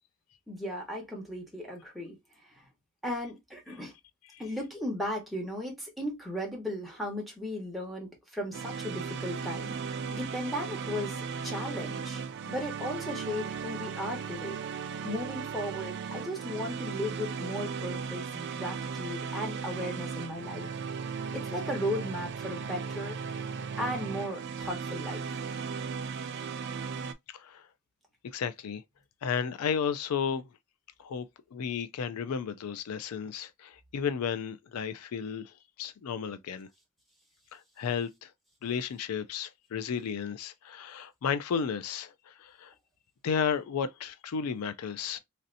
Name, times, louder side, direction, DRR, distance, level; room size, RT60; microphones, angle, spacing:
voice 1, 0.5-2.2 2.4-2.7 3.0-3.9 4.4-9.8 10.1-14.6 15.0-20.7 21.3-23.2 23.8-25.4, left 1 dB, ahead, 1.0 m, -36 dB
sound 1, 8.5-27.1, right 6 dB, 55° right, 0.3 m, -36 dB
voice 2, 28.2-28.8 29.2-30.5 31.0-31.3 31.5-35.5 35.8-36.7 37.5-38.3 38.6-42.7 43.2-45.2, left 7 dB, 90° left, 0.4 m, -33 dB
3.2 x 2.7 x 2.6 m
head